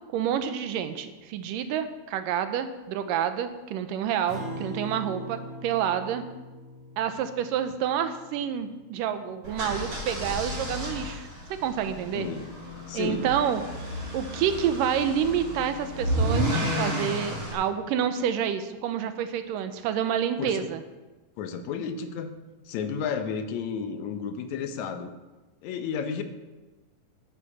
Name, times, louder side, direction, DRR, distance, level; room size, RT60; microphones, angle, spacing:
voice 1, 0.1-6.2 7.0-11.3 11.6-12.3 12.9-13.6 14.1-20.8, right 9 dB, 75° right, 9 dB, 2.3 m, -28 dB
Acoustic guitar, 4.3-9.0, equal, 35° left, 5.6 m, -41 dB
sound 1, 9.4-17.5, equal, 40° right, 4.4 m, -31 dB
voice 2, 12.1-12.5 12.9-13.2 20.4-20.6 21.4-22.3 22.7-25.1 25.6-26.2, left 6 dB, 70° left, 7 dB, 2.0 m, -32 dB
11.5 x 9.9 x 6.0 m, 1.2 s
omnidirectional pair, 4.0 m